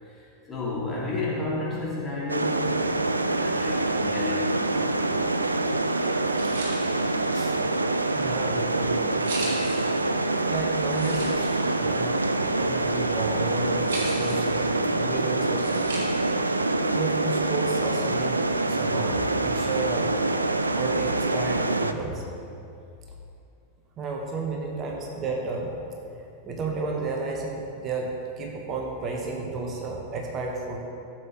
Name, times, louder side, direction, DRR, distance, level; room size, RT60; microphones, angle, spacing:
voice 1, 0.0-5.2 5.6-7.1, left 3 dB, 15° left, -7 dB, 2.6 m, -33 dB
sound 1, 2.3-21.9, right 2 dB, 80° right, 0.4 m, -25 dB
sound 2, 6.0-16.5, right 2 dB, 60° right, 2.4 m, -40 dB
voice 2, 8.1-9.1 10.4-11.5 11.7-14.7 15.0-15.9 16.9-20.1 20.7-22.3 24.0-25.8 26.4-30.8, right 3 dB, 30° right, 0 dB, 1.5 m, -32 dB
16.0 x 7.8 x 3.2 m, 2.5 s
figure-of-eight pair, 90°, 0 cm